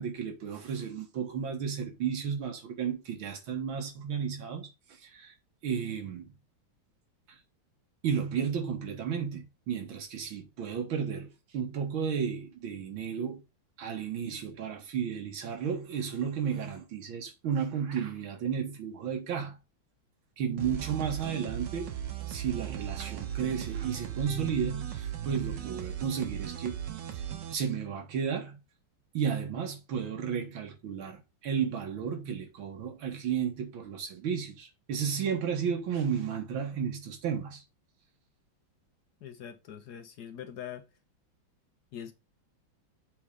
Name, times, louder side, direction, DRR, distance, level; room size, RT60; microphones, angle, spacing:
voice 1, 0.0-4.7 5.0-5.3 5.6-6.3 8.0-13.4 13.8-19.6 20.4-21.9 22.3-26.8 27.5-28.6 29.1-37.6, right 7 dB, 85° right, 2.1 m, -33 dB
sound 1, 20.6-27.5, right 10 dB, 65° right, 1.5 m, -37 dB
voice 2, 39.2-40.9 41.9-42.1, left 9 dB, 65° left, 1.1 m, -43 dB
6.9 x 3.5 x 5.0 m
omnidirectional pair, 2.2 m